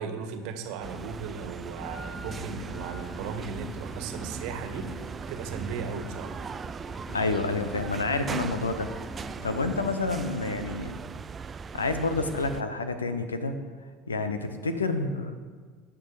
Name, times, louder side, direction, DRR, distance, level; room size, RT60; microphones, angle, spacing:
voice 1, 0.0-6.4, right 5 dB, 60° right, 7 dB, 1.5 m, -37 dB
sound 1, 0.8-12.6, right 5 dB, 30° right, 0.5 m, -39 dB
sound 2, 1.7-10.0, left 1 dB, 15° left, 1.8 m, -45 dB
voice 2, 7.1-8.9 9.4-11.0 11.7-13.5 14.1-15.3, left 3 dB, 90° left, 9 dB, 0.9 m, -29 dB
18.5 x 6.3 x 4.9 m, 1.5 s
hypercardioid pair, 70°, 0 cm